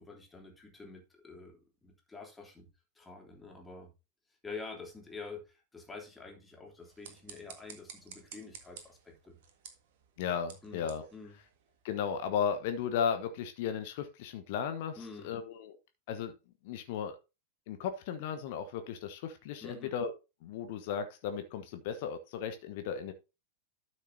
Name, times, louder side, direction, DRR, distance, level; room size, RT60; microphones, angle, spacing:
voice 1, 0.0-2.7 2.9-3.9 4.4-9.4 10.6-11.4 15.0-15.4 19.6-19.9, left 4 dB, 10° left, 3.4 m, -47 dB
sound 1, 6.8-12.1, right 8 dB, 55° right, 1.8 m, -53 dB
voice 2, 10.2-11.0 11.8-15.0 15.2-15.8 16.1-16.3 16.6-17.2 17.7-20.1 20.4-23.1, left 7 dB, 50° left, 1.2 m, -35 dB
12.5 x 6.4 x 2.8 m
figure-of-eight pair, 90°, 0 cm